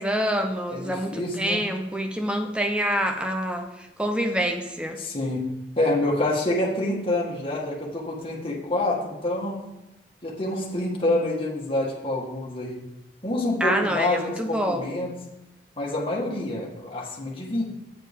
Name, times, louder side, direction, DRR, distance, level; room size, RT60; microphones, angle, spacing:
voice 1, 0.0-5.0 13.6-15.0, equal, 5° right, 5 dB, 0.8 m, -26 dB
voice 2, 0.7-1.6 5.0-9.6 10.2-12.9 13.2-15.1 15.8-17.6, left 1 dB, 30° left, -4 dB, 1.7 m, -27 dB
9.0 x 8.4 x 3.6 m, 0.93 s
head